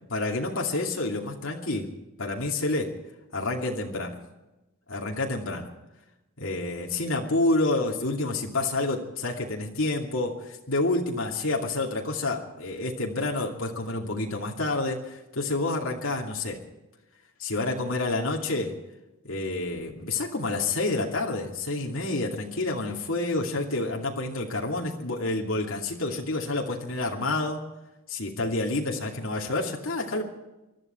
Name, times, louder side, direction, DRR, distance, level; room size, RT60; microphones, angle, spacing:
voice 1, 0.1-1.9 2.2-2.9 3.3-4.2 4.9-5.7 6.4-16.6 17.4-18.8 19.2-27.6 28.1-30.2, left 2 dB, 70° left, -1 dB, 2.6 m, -28 dB
24.0 x 13.0 x 4.5 m, 0.98 s
head